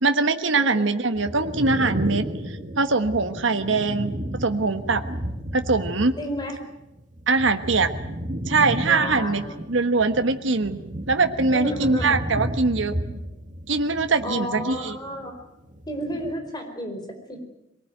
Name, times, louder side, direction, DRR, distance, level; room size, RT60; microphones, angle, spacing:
voice 1, 0.0-2.2 2.7-4.1 4.4-5.0 5.5-6.1 7.3-7.9 8.5-9.4 9.7-10.8 11.1-12.9 13.7-14.9, right 3 dB, 75° right, 7 dB, 1.4 m, -22 dB
voice 2, 0.6-1.1 3.2-3.5 6.2-6.6 8.9-9.6 11.5-12.2 14.2-15.4 15.9-17.5, equal, 20° left, 4 dB, 4.6 m, -32 dB
sound 1, 1.1-6.5 6.7-15.3 15.6-16.3, equal, 40° right, 2.5 m, -33 dB
23.0 x 19.5 x 9.2 m, 0.89 s
head